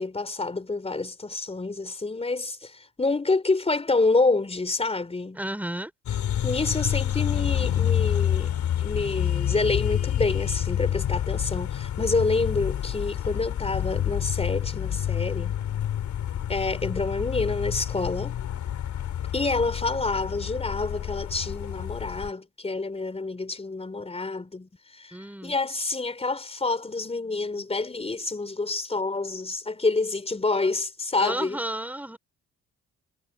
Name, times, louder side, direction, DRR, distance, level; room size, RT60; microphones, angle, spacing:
voice 1, 0.0-5.4 6.4-8.5 8.8-15.5 16.5-18.4 19.3-24.7 25.0-25.2 25.4-31.6, left 3 dB, 20° left, 3.8 m, -28 dB
voice 2, 5.4-5.9 25.1-25.6 31.2-32.2, right 1 dB, 5° right, 4.4 m, -32 dB
sound 1, 6.1-22.3, left 10 dB, 70° left, 3.4 m, -28 dB
cardioid pair, 90°, 30 cm